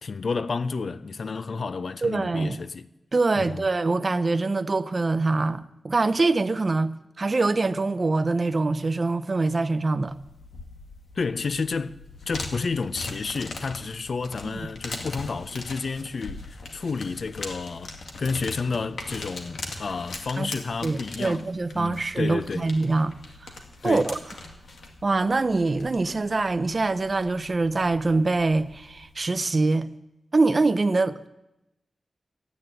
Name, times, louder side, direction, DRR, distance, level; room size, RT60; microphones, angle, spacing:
voice 1, 0.0-2.9 3.3-3.7 11.2-12.0 12.3-17.9 18.2-21.5 21.7-22.7 23.8-24.1, left 4 dB, 55° left, 0.6 m, -30 dB
voice 2, 2.0-2.6 3.1-6.9 7.2-10.2 14.5-14.6 20.4-20.5 20.8-23.2 23.4-23.5 23.8-24.2 25.0-29.9 30.3-31.3, right 3 dB, 35° right, 0.7 m, -24 dB
sound 1, 10.1-29.1, left 3 dB, 85° left, 2.1 m, -41 dB
14.0 x 9.9 x 9.0 m
wide cardioid pair, 150°, 0 cm